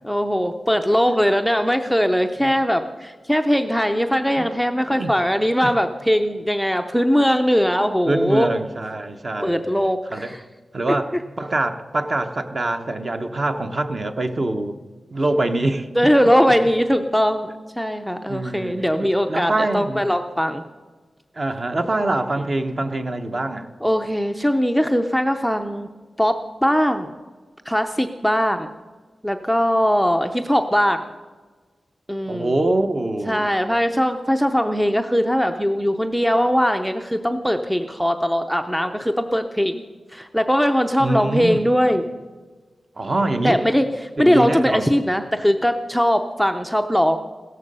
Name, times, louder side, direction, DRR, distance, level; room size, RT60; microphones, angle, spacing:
voice 1, 0.0-8.5 9.4-10.4 16.0-17.5 17.8-20.6 23.8-25.9 26.2-27.1 27.7-28.7 29.2-31.1 32.1-32.5 33.3-39.8 40.1-42.0 43.4-43.9 44.2-47.2, equal, ahead, 7 dB, 0.5 m, -20 dB
voice 2, 8.1-9.6 10.1-10.3 10.7-14.8 15.1-15.9 18.3-20.0 21.3-23.7 32.3-33.5 41.0-41.6 43.0-43.6 44.2-44.9, right 2 dB, 35° right, 7 dB, 0.9 m, -24 dB
16.5 x 14.0 x 5.4 m, 1.4 s
wide cardioid pair, 175°, 0 cm